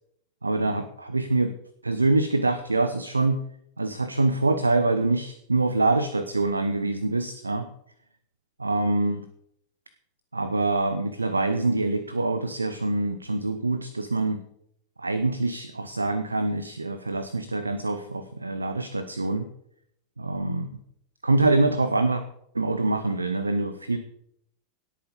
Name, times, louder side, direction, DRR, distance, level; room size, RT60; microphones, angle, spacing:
voice 1, 0.4-1.5 1.8-3.4 3.8-7.7 8.6-9.2 10.3-14.4 15.0-19.5 20.2-20.7 21.2-22.2 22.5-24.0, right 2 dB, 80° right, 11 dB, 0.9 m, -25 dB
17.5 x 8.6 x 5.3 m, 0.73 s
figure-of-eight pair, 90°, 0 cm